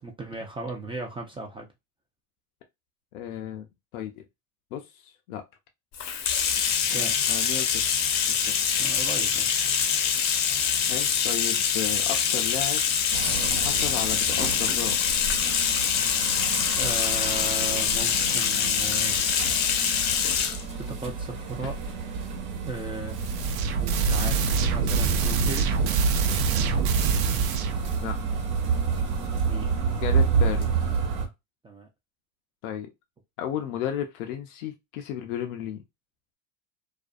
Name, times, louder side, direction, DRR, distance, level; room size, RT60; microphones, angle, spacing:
voice 1, 0.0-1.7 6.9-7.1 8.8-9.6 16.7-19.3 20.8-21.8 22.6-23.3 24.0-25.7 29.5-29.7 31.6-31.9, right 3 dB, 15° right, 0.4 m, -36 dB
voice 2, 3.1-3.7 3.9-4.2 4.7-5.4 6.9-7.8 8.3-8.5 10.9-12.8 13.6-15.0 28.0-28.2 30.0-30.7 32.6-32.9 33.4-35.8, left 10 dB, 85° left, 0.6 m, -34 dB
Bathtub (filling or washing), 5.9-20.6, left 7 dB, 40° left, 0.6 m, -25 dB
sound 1, 13.1-31.3, right 5 dB, 70° right, 1.0 m, -30 dB
sound 2, 23.1-28.0, right 5 dB, 85° right, 0.6 m, -25 dB
2.5 x 2.1 x 2.4 m
supercardioid pair, 100°, 42 cm